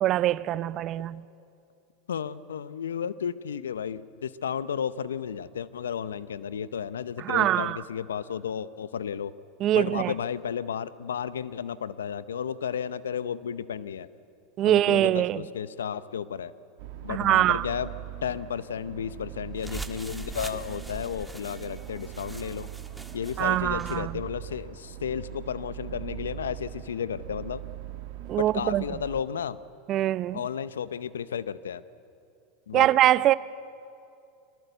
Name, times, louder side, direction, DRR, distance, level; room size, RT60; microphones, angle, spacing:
voice 1, 0.0-1.2 7.2-7.8 9.6-10.1 14.6-15.4 17.1-17.7 23.4-24.2 28.3-28.8 29.9-30.4 32.7-33.3, right 13 dB, 45° right, 0.5 m, -23 dB
voice 2, 2.1-9.3 9.7-14.1 14.6-16.5 17.0-17.9 18.2-22.7 23.1-27.6 28.4-29.6 30.3-31.8 32.7-32.9, left 8 dB, 90° left, 0.7 m, -33 dB
sound 1, 16.8-29.2, right 13 dB, 65° right, 1.3 m, -41 dB
sound 2, 19.6-24.0, right 1 dB, 5° right, 1.5 m, -43 dB
22.0 x 18.5 x 8.1 m
hypercardioid pair, 100°, 0 cm